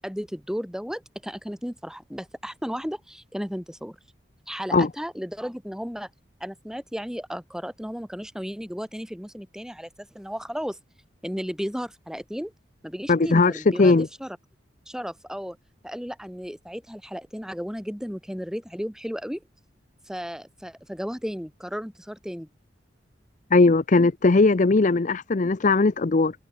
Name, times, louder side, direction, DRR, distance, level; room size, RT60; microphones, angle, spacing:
voice 1, 0.0-4.0 4.5-6.1 6.4-10.8 11.2-12.5 12.8-14.4 14.9-15.6 15.8-19.4 20.1-22.5, equal, 5° right, 7.9 m, -34 dB
voice 2, 13.1-14.1 23.5-26.3, left 3 dB, 45° left, 0.6 m, -19 dB
head